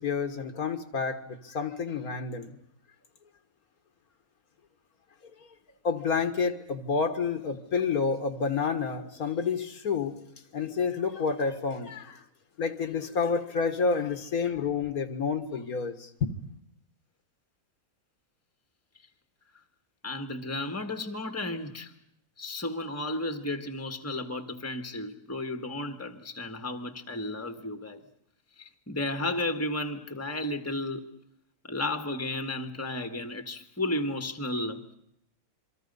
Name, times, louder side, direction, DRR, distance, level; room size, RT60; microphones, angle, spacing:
voice 1, 0.0-2.6 5.8-10.2 10.5-12.2 12.6-16.3, left 5 dB, 75° left, 1.9 m, -29 dB
voice 2, 20.0-21.9 22.4-28.0 28.6-31.1 31.7-34.9, left 1 dB, 10° left, 1.3 m, -33 dB
27.5 x 24.0 x 5.4 m
omnidirectional pair, 1.6 m